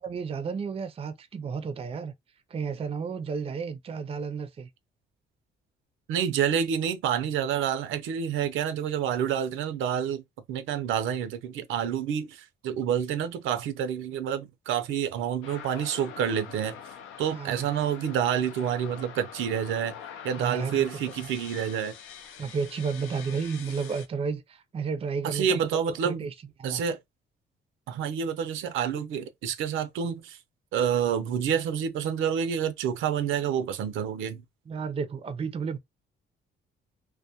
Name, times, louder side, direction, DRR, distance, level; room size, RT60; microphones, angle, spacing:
voice 1, 0.0-2.1 2.5-4.7 17.3-17.7 20.4-20.9 21.2-21.3 22.4-25.6 26.0-26.3 26.6-26.8 34.7-35.8, right 5 dB, 30° right, 0.4 m, -32 dB
voice 2, 6.1-10.2 10.5-16.8 17.2-19.9 20.2-21.9 25.2-26.3 26.6-27.0 27.9-30.4 30.7-34.4, right 8 dB, 85° right, 0.5 m, -28 dB
sound 1, 15.4-24.1, left 8 dB, 85° left, 0.5 m, -45 dB
2.2 x 2.1 x 2.7 m
cardioid pair, 90°, 20 cm